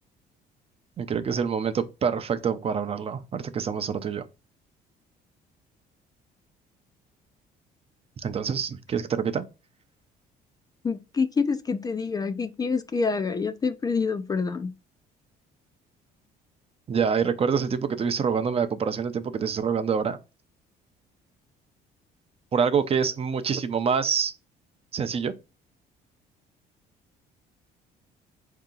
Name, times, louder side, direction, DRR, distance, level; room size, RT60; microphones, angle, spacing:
voice 1, 1.0-4.3 8.2-9.4 16.9-20.2 22.5-24.3 24.9-25.3, right 6 dB, 35° right, 0.6 m, -26 dB
voice 2, 10.8-14.7, left 5 dB, 20° left, 0.4 m, -27 dB
4.6 x 2.8 x 3.7 m
cardioid pair, 110°, 17 cm